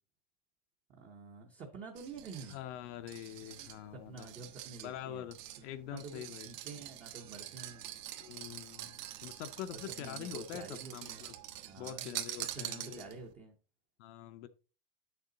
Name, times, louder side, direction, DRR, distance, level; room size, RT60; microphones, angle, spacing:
voice 1, 1.0-2.6 3.4-5.3 5.9-7.8 9.7-11.2 11.7-12.1 12.5-13.5, right 4 dB, 15° right, 0.6 m, -48 dB
sound 1, 2.0-13.3, right 13 dB, 70° right, 1.3 m, -46 dB
voice 2, 2.5-4.3 4.8-6.5 8.2-11.4 11.8-13.1 14.0-14.5, left 11 dB, 45° left, 0.6 m, -45 dB
8.6 x 6.8 x 3.8 m
supercardioid pair, 165°, 50 cm